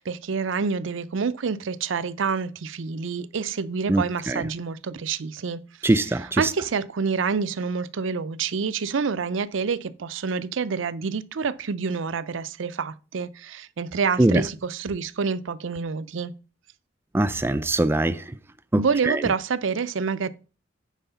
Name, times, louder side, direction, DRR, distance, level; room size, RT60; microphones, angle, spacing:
voice 1, 0.0-5.9 6.4-16.3 18.8-20.3, right 5 dB, 75° right, 0.5 m, -27 dB
voice 2, 3.9-4.4 5.8-6.5 14.2-14.4 17.1-18.2 18.7-19.2, right 1 dB, 10° right, 0.4 m, -22 dB
9.1 x 4.8 x 5.7 m
head